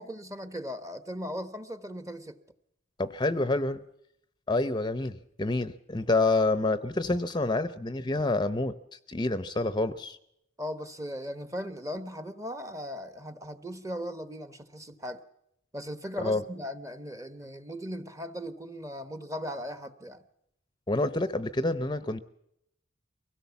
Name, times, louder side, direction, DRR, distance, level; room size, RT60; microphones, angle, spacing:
voice 1, 0.0-2.4 10.6-15.2 15.7-20.2, equal, 15° right, 11 dB, 1.1 m, -38 dB
voice 2, 3.0-3.8 4.5-10.2 16.2-16.4 20.9-22.2, left 2 dB, 25° left, 13 dB, 0.7 m, -28 dB
24.0 x 17.5 x 7.1 m, 0.78 s
head